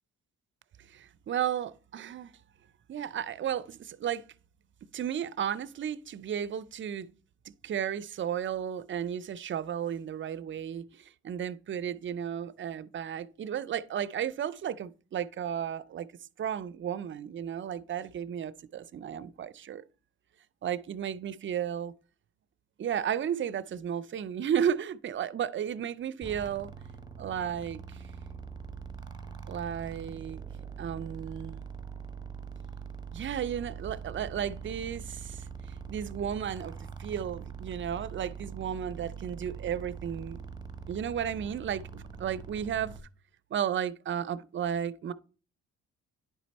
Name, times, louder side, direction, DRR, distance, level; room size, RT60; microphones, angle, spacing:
voice 1, 0.8-2.3 2.9-4.2 4.9-7.1 7.6-16.1 16.4-19.8 20.6-21.9 22.8-26.7 27.2-28.1 29.5-30.4 30.8-31.6 33.1-40.4 40.9-42.9 43.5-45.1, right 9 dB, 40° right, 0.5 m, -34 dB
sound 1, 26.2-43.0, right 6 dB, 15° right, 0.8 m, -43 dB
9.8 x 4.3 x 4.1 m
cardioid pair, 90°, 30 cm